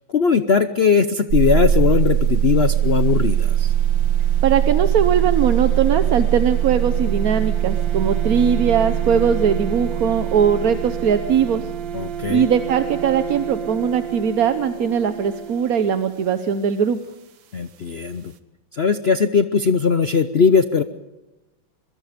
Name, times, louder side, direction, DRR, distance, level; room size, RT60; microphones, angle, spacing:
voice 1, 0.1-3.7 11.9-12.4 17.5-18.3 18.7-20.8, left 6 dB, 75° left, 10 dB, 0.5 m, -19 dB
sound 1, 1.3-15.8, right 10 dB, 70° right, 1.8 m, -22 dB
voice 2, 4.4-11.7 12.3-17.0, right 7 dB, 55° right, 9 dB, 1.2 m, -20 dB
23.5 x 22.5 x 5.1 m, 1.1 s
omnidirectional pair, 2.1 m